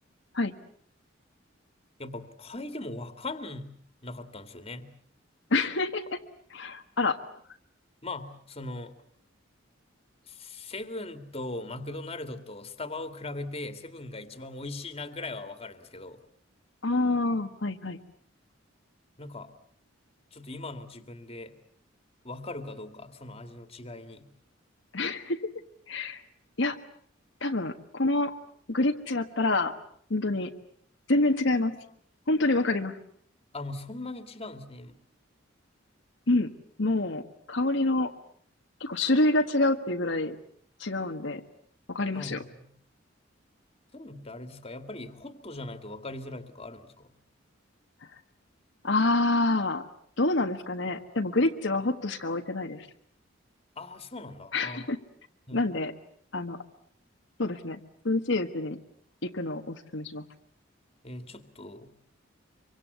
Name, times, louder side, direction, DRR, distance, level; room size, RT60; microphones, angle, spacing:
voice 1, 2.0-3.8 4.0-4.9 8.0-8.9 10.3-16.2 19.2-19.5 20.3-21.5 22.2-24.3 33.5-35.0 42.1-42.7 43.9-47.1 53.8-54.9 55.5-55.7 61.0-62.0, left 2 dB, 30° left, 9 dB, 2.3 m, -40 dB
voice 2, 5.5-6.2 6.5-7.2 16.8-18.0 24.9-25.4 25.9-26.2 26.6-26.8 27.4-28.3 28.7-29.7 30.1-30.5 31.1-31.8 32.3-33.0 36.3-36.5 36.8-37.2 37.5-38.1 38.8-40.4 40.8-41.4 41.9-42.4 48.8-49.8 50.2-52.9 54.5-55.0 55.5-55.9 56.3-56.6 57.4-57.8 58.0-58.8 59.2-60.2, left 2 dB, 65° left, 4 dB, 1.5 m, -27 dB
25.5 x 25.0 x 8.3 m, 0.63 s
head